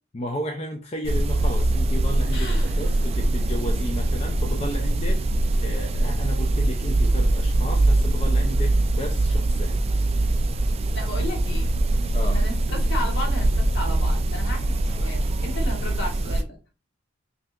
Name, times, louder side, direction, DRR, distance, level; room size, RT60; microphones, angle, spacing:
voice 1, 0.1-2.5 2.8-5.2 5.6-9.8 12.1-12.4, equal, 35° left, 2 dB, 0.5 m, -33 dB
kettle K monaural kitchen, 1.0-16.4, right 2 dB, 30° right, 0.3 m, -22 dB
voice 2, 2.3-3.0 10.9-11.7 12.2-16.6, left 1 dB, 70° left, 0 dB, 1.4 m, -34 dB
5.4 x 2.8 x 2.4 m, 0.34 s
head